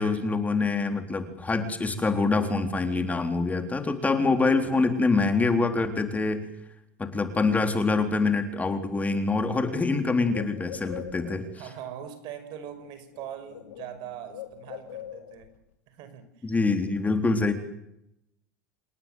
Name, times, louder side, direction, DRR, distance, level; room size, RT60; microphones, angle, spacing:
voice 1, 0.0-6.5 7.0-11.4 16.4-17.5, left 3 dB, 15° left, 7 dB, 3.8 m, -25 dB
Bird, 8.7-8.8 9.1-11.6 12.6-12.9 13.1-15.6, left 11 dB, 80° left, 2.2 m, -43 dB
voice 2, 11.5-15.5 15.9-16.5, right 9 dB, 60° right, 11 dB, 5.6 m, -41 dB
28.0 x 18.5 x 9.3 m, 0.79 s
hypercardioid pair, 100°, 9 cm